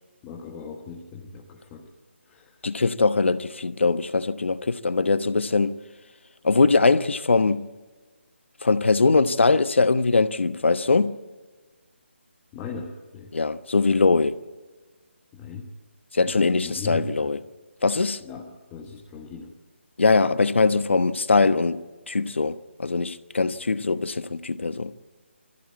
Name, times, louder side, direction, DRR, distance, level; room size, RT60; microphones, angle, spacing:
voice 1, 0.2-1.9 2.2-2.5 12.5-13.3 15.3-15.7 16.2-17.3 18.2-19.5, left 5 dB, 15° left, 1.5 m, -38 dB
voice 2, 2.6-5.8 6.4-7.7 8.6-11.2 13.3-14.4 16.1-17.4 17.8-18.2 20.0-24.9, left 3 dB, 70° left, 1.1 m, -21 dB
23.0 x 15.0 x 8.4 m
figure-of-eight pair, 155°, 7 cm